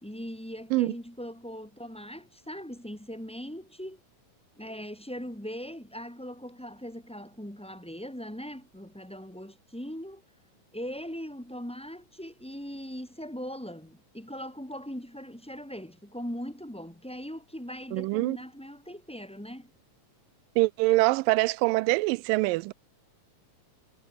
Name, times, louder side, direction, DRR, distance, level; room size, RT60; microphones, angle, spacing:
voice 1, 0.0-4.0 4.6-10.2 10.7-19.7, equal, 5° left, 1.1 m, -40 dB
voice 2, 17.9-18.4 20.6-22.7, right 23 dB, 85° right, 2.2 m, -24 dB
omnidirectional pair, 3.9 m